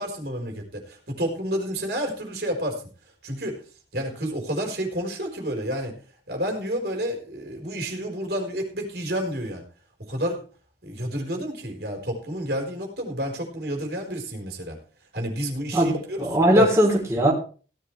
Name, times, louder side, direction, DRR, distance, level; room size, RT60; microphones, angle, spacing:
voice 1, 0.0-2.8 3.2-3.6 3.9-6.0 6.3-9.6 10.0-10.4 10.8-14.8 15.1-16.3 16.5-16.7, equal, 60° right, 2 dB, 4.2 m, -29 dB
voice 2, 15.7-17.3, right 1 dB, 15° right, -2 dB, 3.3 m, -20 dB
17.0 x 11.5 x 3.3 m, 0.37 s
head